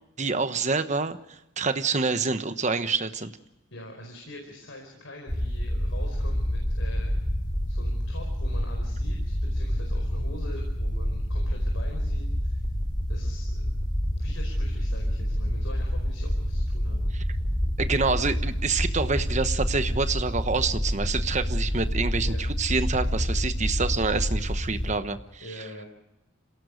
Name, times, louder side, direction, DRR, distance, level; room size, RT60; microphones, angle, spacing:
voice 1, 0.2-1.2 1.6-3.3 17.8-25.4, right 4 dB, 35° right, 10 dB, 1.1 m, -27 dB
voice 2, 3.7-7.1 7.7-12.6 13.1-13.7 14.1-17.0 22.2-22.4 25.4-25.9, left 1 dB, 80° left, 1 dB, 4.8 m, -44 dB
sound 1, 5.3-24.9, equal, 25° left, 3.1 m, -28 dB
26.5 x 17.5 x 6.5 m, 0.91 s
head